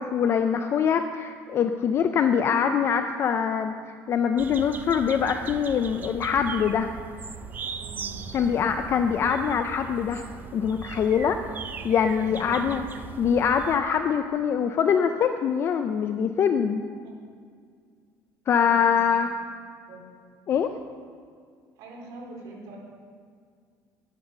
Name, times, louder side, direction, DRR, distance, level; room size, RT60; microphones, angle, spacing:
voice 1, 0.0-3.7 4.1-7.0 8.3-10.3 10.5-11.4 11.8-12.8 13.2-16.8 18.5-19.3 20.5-20.7, left 7 dB, 35° left, 8 dB, 0.4 m, -23 dB
sound 1, 4.4-13.8, right 5 dB, 25° right, 0.5 m, -39 dB
voice 2, 7.7-8.7 12.2-12.7 17.0-17.2 18.6-19.3 19.7-20.1 21.8-22.8, right 2 dB, 75° right, -2 dB, 3.5 m, -44 dB
10.5 x 9.6 x 6.7 m, 2.1 s
cardioid pair, 160°, 7 cm